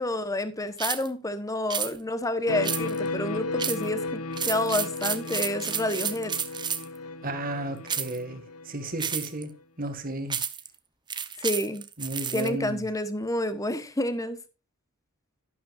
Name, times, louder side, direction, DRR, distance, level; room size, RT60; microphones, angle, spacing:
voice 1, 0.0-6.3 11.4-11.9 12.3-14.4, left 1 dB, 15° left, 1.1 m, -29 dB
sound 1, 0.8-1.1 1.7-1.9 2.6-3.1 3.6-3.9 4.3-7.0 7.9-8.2 9.0-9.4 10.3-10.7 11.1-12.5, right 7 dB, 20° right, 0.8 m, -31 dB
sound 2, 2.5-9.1, left 2 dB, 85° left, 1.0 m, -34 dB
voice 2, 7.2-9.5 9.8-10.4 12.0-12.9, right 1 dB, 40° right, 2.0 m, -33 dB
12.0 x 11.0 x 2.5 m
head